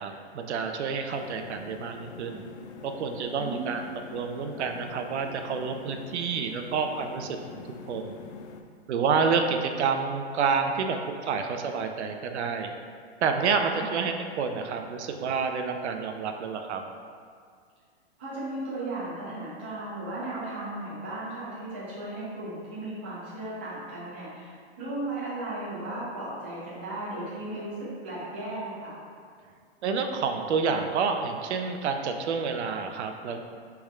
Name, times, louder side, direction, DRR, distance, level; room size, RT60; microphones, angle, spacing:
voice 1, 0.0-2.4 2.8-3.8 4.1-8.2 8.9-12.7 13.2-16.8 29.8-33.4, right 5 dB, 80° right, 5 dB, 0.6 m, -29 dB
sound 1, 1.1-8.6, left 5 dB, 75° left, 0.5 m, -44 dB
voice 2, 3.4-3.8 13.7-13.9 18.2-28.9, right 2 dB, 10° right, -10 dB, 0.3 m, -36 dB
3.5 x 3.2 x 4.8 m, 2.1 s
hypercardioid pair, 170°, 33 cm